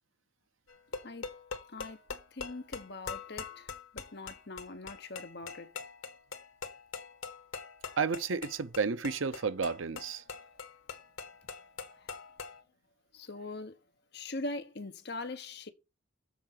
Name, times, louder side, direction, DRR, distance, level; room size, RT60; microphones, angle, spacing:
sound 1, 0.7-12.6, left 5 dB, 90° left, 1.3 m, -43 dB
voice 1, 1.7-2.0 2.3-5.7 12.0-12.1 13.1-13.8 14.1-15.7, left 2 dB, 55° left, 1.0 m, -42 dB
voice 2, 8.0-10.2, right 5 dB, 75° right, 0.7 m, -32 dB
7.2 x 4.8 x 5.8 m
head